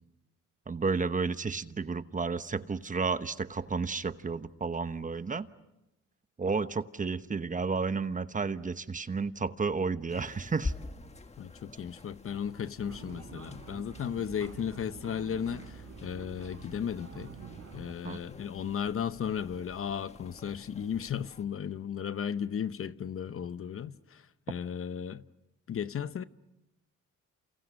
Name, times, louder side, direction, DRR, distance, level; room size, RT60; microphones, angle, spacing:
voice 1, 0.7-5.5 6.4-10.7 18.0-18.2, right 4 dB, 25° right, 1.0 m, -32 dB
sound 1, 10.1-21.5, left 3 dB, 20° left, 1.7 m, -46 dB
voice 2, 11.4-17.3 17.7-25.2 25.7-26.2, left 8 dB, 45° left, 0.9 m, -35 dB
sound 2, 12.8-17.9, right 6 dB, 55° right, 3.7 m, -47 dB
29.0 x 28.5 x 6.3 m
cardioid pair, 90°, 30 cm